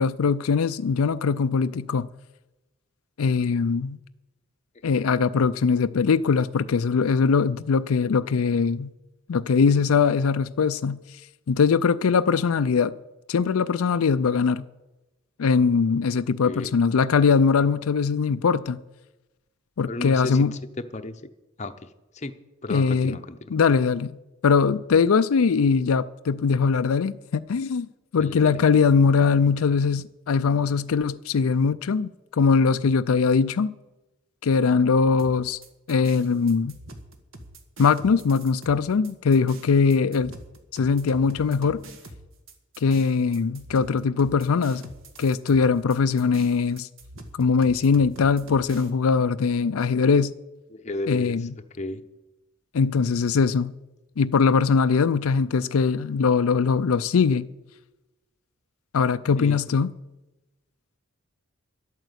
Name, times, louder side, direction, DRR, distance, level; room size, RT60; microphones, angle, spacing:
voice 1, 0.0-2.1 3.2-4.0 4.8-8.9 9.3-11.0 11.5-12.9 13.3-14.7 15.4-18.8 19.8-20.6 22.7-23.2 23.5-24.2 24.4-27.9 28.1-33.7 34.4-35.6 35.9-36.8 37.8-40.3 40.7-41.8 42.8-44.9 45.2-46.9 47.3-50.3 51.1-51.5 52.7-53.7 54.2-57.5 58.9-59.9, left 5 dB, 85° left, 0.4 m, -21 dB
voice 2, 16.4-16.8 19.9-20.4 20.9-21.3 21.6-21.7 22.1-22.3 22.6-23.4 28.2-28.6 50.7-51.5 51.8-52.0 59.4-59.6, left 2 dB, 30° left, 0.7 m, -33 dB
sound 1, 35.2-48.9, right 1 dB, 65° right, 1.6 m, -45 dB
11.5 x 9.0 x 8.1 m
head